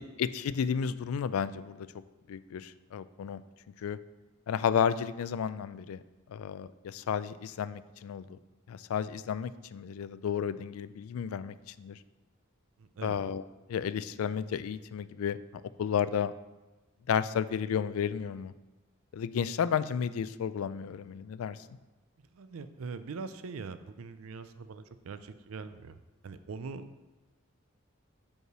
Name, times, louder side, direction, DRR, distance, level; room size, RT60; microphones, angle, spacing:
voice 1, 0.0-1.9 2.3-3.4 3.8-4.0 4.5-6.0 6.3-8.4 8.7-12.0 13.0-13.4 13.7-15.4 15.8-16.3 17.1-18.5 19.1-21.6, left 7 dB, 85° left, 15 dB, 0.3 m, -32 dB
voice 2, 12.8-13.2 22.3-26.0 26.2-26.9, right 4 dB, 80° right, 12 dB, 0.5 m, -42 dB
5.3 x 4.8 x 6.0 m, 1.1 s
head